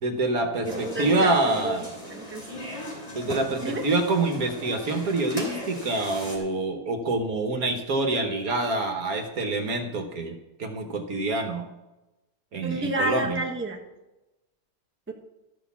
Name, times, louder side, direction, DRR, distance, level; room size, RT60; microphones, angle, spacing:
voice 1, 0.0-1.9 3.1-11.7 12.5-13.4, right 2 dB, 65° right, 5 dB, 1.6 m, -26 dB
sound 1, 0.6-6.4, equal, 20° left, 3.3 m, -37 dB
voice 2, 0.6-1.8 2.1-2.6 3.6-3.8 12.6-13.8 15.1-15.2, right 1 dB, 10° right, -1 dB, 1.3 m, -30 dB
13.5 x 6.4 x 7.2 m, 1.0 s
omnidirectional pair, 1.7 m